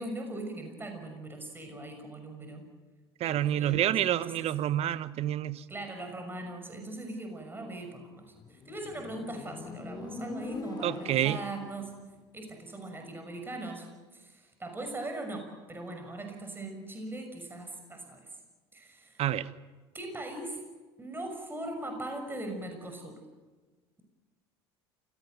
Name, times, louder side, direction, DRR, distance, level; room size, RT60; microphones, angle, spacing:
voice 1, 0.0-2.6 3.2-4.5 5.7-11.9 12.3-13.9 14.1-18.3 18.7-19.2 19.9-20.6 21.0-23.2, right 1 dB, 15° right, 4 dB, 6.1 m, -40 dB
voice 2, 3.2-5.6 10.8-11.4 19.2-19.5, right 12 dB, 50° right, 16 dB, 1.2 m, -28 dB
Motorcycle, 8.4-11.9, left 3 dB, 30° left, 3.6 m, -42 dB
28.5 x 17.0 x 9.3 m, 1.3 s
hypercardioid pair, 70°, 13 cm